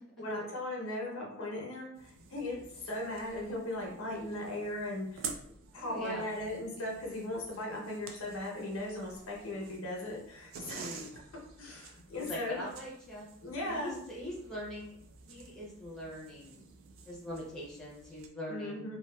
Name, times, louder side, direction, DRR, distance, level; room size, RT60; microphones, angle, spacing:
voice 1, 0.2-2.6 2.8-5.3 5.7-11.0 11.6-12.6 13.4-14.0 18.5-19.0, left 1 dB, 90° left, -2 dB, 0.8 m, -38 dB
sound 1, 1.9-18.3, right 5 dB, 70° right, 0.4 m, -50 dB
voice 2, 5.7-6.3 10.7-11.1 12.1-13.3 13.7-16.7 17.1-18.9, equal, ahead, -6 dB, 0.6 m, -42 dB
2.8 x 2.3 x 2.2 m, 0.70 s
head